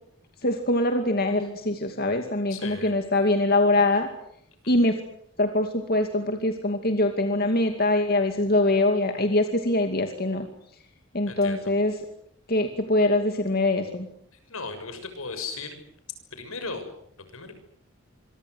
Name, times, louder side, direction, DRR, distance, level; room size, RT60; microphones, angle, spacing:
voice 1, 0.4-4.1 4.7-5.0 5.4-10.5 11.1-11.9 12.5-14.1, left 2 dB, 45° left, 5 dB, 2.5 m, -23 dB
voice 2, 2.5-2.9 4.6-4.7 11.3-11.6 14.5-15.8 16.4-16.9 17.3-17.5, left 4 dB, 75° left, 9 dB, 6.7 m, -36 dB
26.5 x 24.5 x 8.0 m, 0.71 s
head